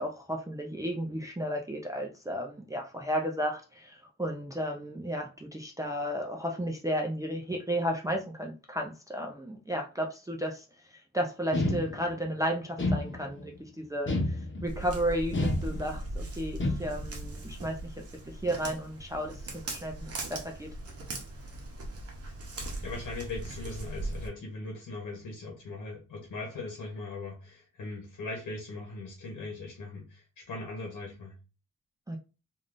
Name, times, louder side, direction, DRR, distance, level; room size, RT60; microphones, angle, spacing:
voice 1, 0.0-10.6 10.9-17.9 18.2-20.7 32.1-32.2, equal, 10° right, 0.4 m, -33 dB
sound 1, 11.5-12.3 12.8-13.5 14.1-14.8 15.3-16.1 16.6-17.2, left 1 dB, 40° left, 0.9 m, -30 dB
Walk footsteps, 14.7-24.3, right 2 dB, 50° right, 0.9 m, -39 dB
voice 2, 22.8-31.4, left 3 dB, 80° left, 1.0 m, -40 dB
3.4 x 2.6 x 2.5 m
wide cardioid pair, 115°, 31 cm